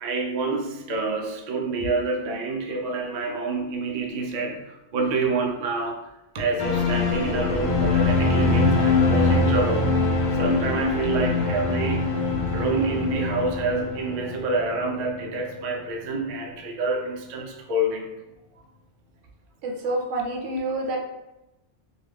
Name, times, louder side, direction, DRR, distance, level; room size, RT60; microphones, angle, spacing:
voice 1, 0.0-6.0 6.3-9.9 10.3-18.1, right 3 dB, 65° right, 2 dB, 0.4 m, -27 dB
sound 1, 6.6-15.7 16.0-16.1, left 3 dB, 55° left, 0.5 m, -23 dB
voice 2, 19.6-21.0, right 2 dB, 85° right, 1 dB, 0.9 m, -28 dB
2.4 x 2.3 x 3.3 m, 0.96 s
omnidirectional pair, 1.2 m